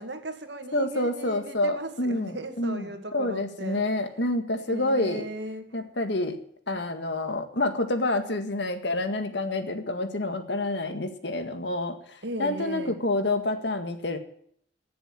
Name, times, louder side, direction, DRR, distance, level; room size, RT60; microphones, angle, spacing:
voice 1, 0.0-3.8 4.7-5.7 12.2-13.0, right 2 dB, 70° right, 6 dB, 2.1 m, -37 dB
voice 2, 0.7-5.3 5.7-6.4 6.7-14.2, left 2 dB, 70° left, 7 dB, 1.9 m, -28 dB
16.5 x 7.1 x 9.0 m, 0.66 s
head